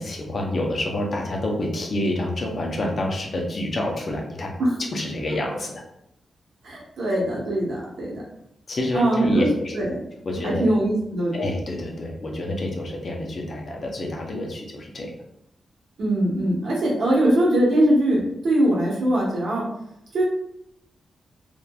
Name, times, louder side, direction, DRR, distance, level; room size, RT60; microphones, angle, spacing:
voice 1, 0.0-4.5 4.9-5.8 8.7-9.8 10.3-10.6 11.3-15.1, left 1 dB, 55° left, 1 dB, 0.7 m, -28 dB
voice 2, 6.6-8.2 8.9-9.5 9.8-10.0 10.4-11.3 16.0-19.6 20.1-20.2, right 1 dB, 75° right, -4 dB, 1.0 m, -21 dB
2.8 x 2.5 x 2.3 m, 0.79 s
cardioid pair, 60°, 0 cm